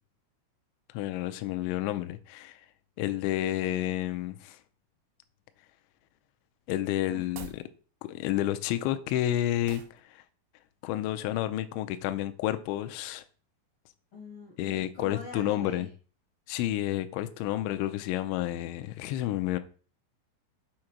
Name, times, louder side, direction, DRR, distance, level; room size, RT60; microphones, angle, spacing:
voice 1, 0.9-2.6 3.0-4.6 6.7-7.6 8.0-10.2 10.8-13.2 14.6-15.9 16.5-19.6, left 14 dB, 85° left, 2.7 m, -30 dB
sound 1, 7.2-7.7 9.7-10.0, right 8 dB, 80° right, 2.6 m, -44 dB
voice 2, 14.1-15.9, left 2 dB, 65° left, 1.2 m, -43 dB
7.8 x 3.8 x 5.9 m
omnidirectional pair, 5.8 m